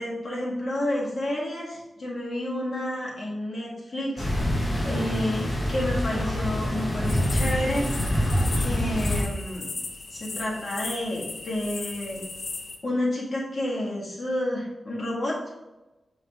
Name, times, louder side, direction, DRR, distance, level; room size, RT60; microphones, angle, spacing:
voice 1, 0.0-8.0 8.6-9.7 10.1-12.2 12.8-15.4, left 1 dB, 45° left, -5 dB, 1.9 m, -30 dB
sound 1, 4.2-9.2, equal, 15° left, 1.4 m, -26 dB
sound 2, 7.0-12.8, left 3 dB, 65° left, 0.8 m, -37 dB
5.3 x 4.9 x 3.6 m, 1.1 s
wide cardioid pair, 135°, 0 cm